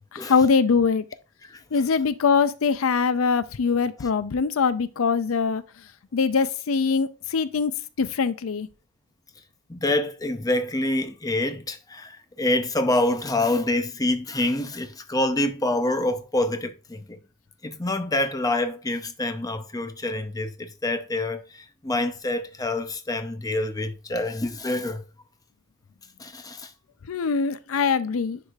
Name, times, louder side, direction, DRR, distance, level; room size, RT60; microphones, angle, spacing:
voice 1, 0.2-1.0 1.7-5.6 6.1-7.7 8.0-8.7 27.1-28.4, left 5 dB, 80° left, 0.5 m, -22 dB
voice 2, 9.7-17.2 17.6-25.0 26.2-26.7, left 2 dB, 15° left, 0.6 m, -26 dB
10.0 x 4.8 x 2.4 m
head